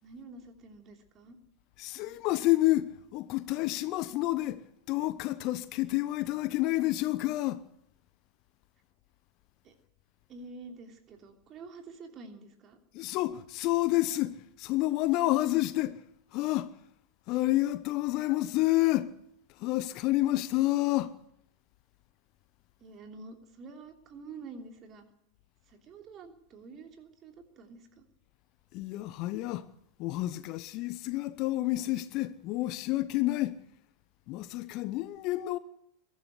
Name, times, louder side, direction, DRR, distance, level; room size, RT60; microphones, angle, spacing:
voice 1, 0.0-1.4 9.6-9.7 10.3-12.8 22.8-25.0 25.7-28.0, right 4 dB, 30° right, 3.1 m, -48 dB
voice 2, 1.8-7.6 12.9-16.0 16.3-16.7 17.3-19.1 19.6-21.1 28.7-29.7 30.0-33.6 34.3-35.6, left 17 dB, 40° left, 0.9 m, -29 dB
22.5 x 13.0 x 9.6 m
figure-of-eight pair, 90°, 0 cm